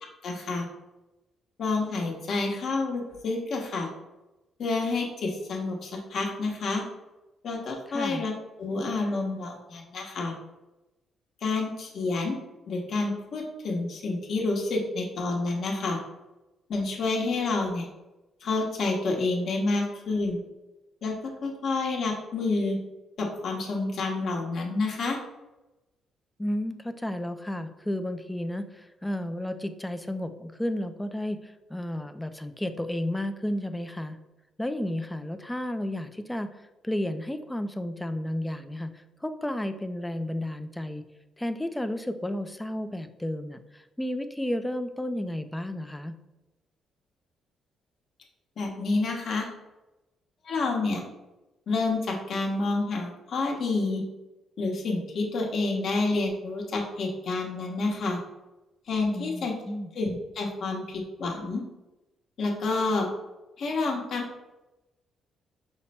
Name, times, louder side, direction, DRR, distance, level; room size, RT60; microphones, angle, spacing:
voice 1, 0.2-0.7 1.6-3.9 4.6-6.8 7.4-8.3 8.6-10.3 11.4-12.3 12.7-16.0 16.7-17.9 18.4-20.4 21.0-21.1 21.4-22.8 23.2-25.2 48.6-49.5 50.4-51.0 51.7-54.0 54.6-58.2 58.9-59.5 59.9-61.6 62.4-63.1 63.6-64.4, left 3 dB, 60° left, 0 dB, 1.1 m, -29 dB
voice 2, 7.9-8.2 26.4-34.2 34.6-36.5 36.8-41.0 41.4-46.2 59.1-59.9, left 1 dB, 10° left, 10 dB, 0.4 m, -32 dB
5.7 x 2.1 x 4.2 m, 1.0 s
cardioid pair, 90°, 0 cm